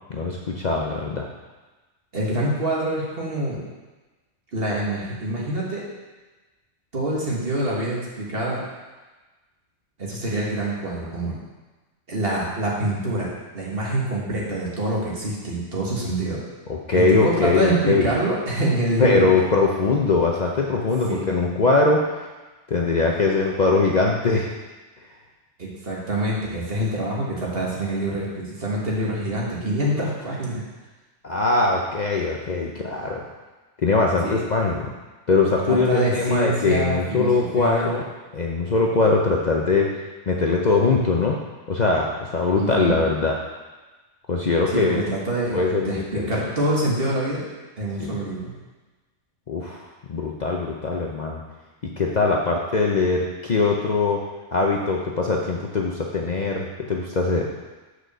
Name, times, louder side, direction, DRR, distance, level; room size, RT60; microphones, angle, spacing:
voice 1, 0.1-1.3 16.7-18.1 19.0-22.1 22.7-24.5 31.2-33.2 33.8-34.9 35.3-38.0 38.3-39.9 40.3-41.4 41.7-43.4 44.3-45.0 45.5-46.3 48.0-48.2 49.5-51.4 52.0-54.2 54.5-57.5, left 3 dB, 45° left, -1 dB, 0.7 m, -21 dB
voice 2, 2.1-3.6 4.5-5.8 6.9-8.6 10.0-11.4 12.1-16.4 16.9-19.3 21.1-21.3 25.6-30.6 34.2-34.4 35.6-37.9 42.5-43.0 44.9-47.4 47.8-48.5, right 1 dB, 50° right, -4 dB, 1.9 m, -25 dB
6.2 x 4.8 x 6.7 m, 1.2 s
omnidirectional pair, 1.3 m